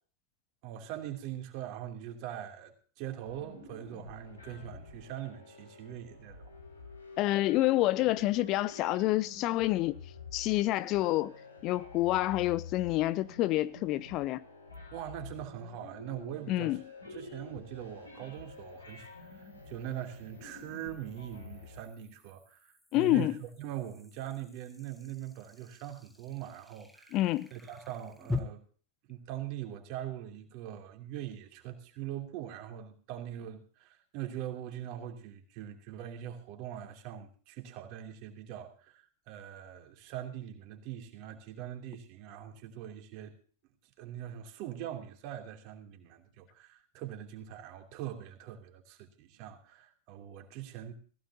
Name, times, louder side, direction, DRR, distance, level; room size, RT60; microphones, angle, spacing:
voice 1, 0.6-6.5 14.9-16.8 17.1-27.2 27.5-28.6 29.1-43.4 44.0-50.9, right 11 dB, 45° right, 2.9 m, -42 dB
sound 1, 3.2-21.8, left 3 dB, 80° left, 4.6 m, -49 dB
voice 2, 7.2-10.0 10.3-11.3 11.6-14.4 16.5-16.8 22.9-23.3 27.1-27.5, left 16 dB, 40° left, 0.5 m, -28 dB
sound 2, 14.7-14.8 18.2-28.4, left 3 dB, 5° left, 1.4 m, -46 dB
18.5 x 16.0 x 2.8 m
figure-of-eight pair, 90°, 0 cm